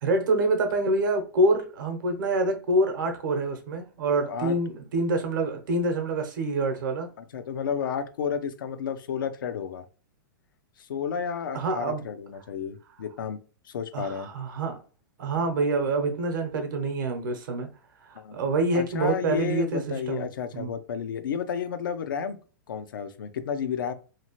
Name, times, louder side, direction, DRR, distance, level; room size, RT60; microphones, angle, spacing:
voice 1, 0.0-7.1 11.5-12.0 13.9-14.8 15.2-17.7 18.0-20.3 20.5-20.7, right 2 dB, 70° right, 0.8 m, -26 dB
voice 2, 4.2-4.6 7.2-9.9 10.8-13.4 13.7-14.3 18.2-18.4 18.7-22.4 22.7-23.9, left 7 dB, 80° left, 0.4 m, -31 dB
2.9 x 2.4 x 2.9 m
hypercardioid pair, 120°, 11 cm